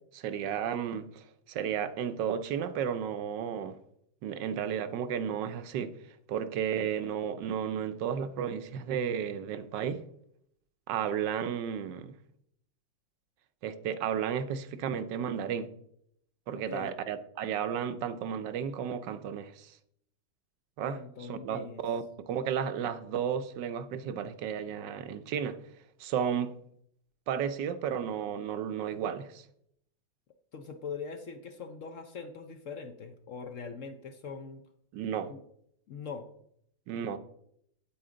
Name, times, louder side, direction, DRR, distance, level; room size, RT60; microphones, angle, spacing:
voice 1, 0.1-3.7 4.2-5.9 6.3-10.0 10.9-12.1 13.6-15.7 16.5-19.7 20.8-21.0 21.3-25.6 26.0-26.5 27.3-29.4 34.9-35.3 36.9-37.2, right 8 dB, 80° right, 1.4 m, -33 dB
voice 2, 16.6-16.9 20.9-21.8 30.5-34.6 35.3-35.4 35.9-36.3, left 5 dB, 60° left, 0.9 m, -42 dB
8.7 x 8.6 x 3.8 m
omnidirectional pair, 1.9 m